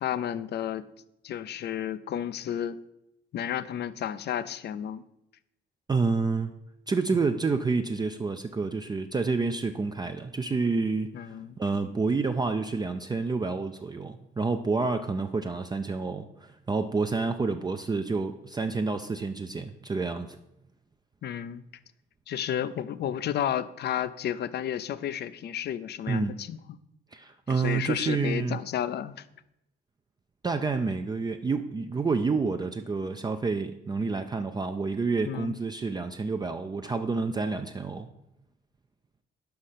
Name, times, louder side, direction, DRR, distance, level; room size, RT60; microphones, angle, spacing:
voice 1, 0.0-0.9 1.2-2.8 3.3-5.0 11.1-11.6 21.2-21.6 22.3-26.6 27.5-29.2 35.3-35.6, left 10 dB, 55° left, 16 dB, 0.5 m, -32 dB
voice 2, 5.9-6.5 6.9-20.4 26.1-26.4 27.1-28.6 30.4-38.1, right 4 dB, 20° right, 6 dB, 0.4 m, -29 dB
5.8 x 5.2 x 6.6 m, 0.85 s
cardioid pair, 90°, 20 cm